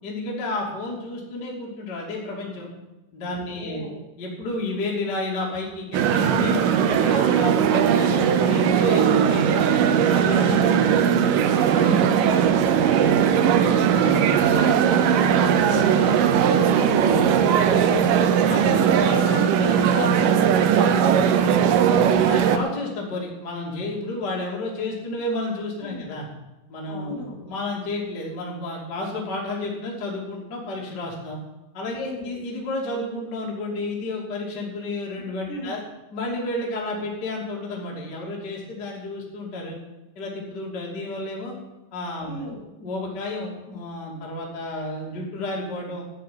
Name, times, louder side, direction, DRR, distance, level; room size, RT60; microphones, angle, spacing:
voice 1, 0.0-2.7 3.1-3.8 4.2-9.6 10.1-11.4 11.7-12.1 12.5-16.8 18.4-18.7 21.8-26.3 26.7-31.4 31.7-35.8 36.1-39.8 40.1-41.6 41.9-42.5 42.8-46.0, left 2 dB, 30° left, -3 dB, 2.7 m, -31 dB
voice 2, 3.4-3.9 6.8-7.1 7.7-8.3 10.3-10.6 16.7-18.2 18.5-21.3 25.8-26.1 26.9-27.5 32.0-32.3 35.5-35.7 42.2-42.6, left 1 dB, 65° left, -1 dB, 5.1 m, -33 dB
sound 1, 5.9-22.6, right 8 dB, 80° right, 1.9 m, -19 dB
13.0 x 6.3 x 9.6 m, 1.0 s
omnidirectional pair, 5.0 m